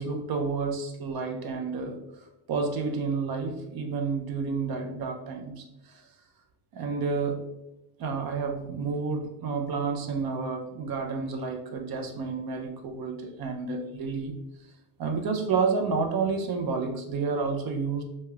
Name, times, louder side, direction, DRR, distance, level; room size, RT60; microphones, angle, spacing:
voice 1, 0.0-2.0 2.5-6.0 6.7-7.4 8.0-14.4 15.0-18.0, right 4 dB, 50° right, 4 dB, 0.6 m, -30 dB
3.0 x 2.9 x 2.3 m, 0.88 s
cardioid pair, 100°, 46 cm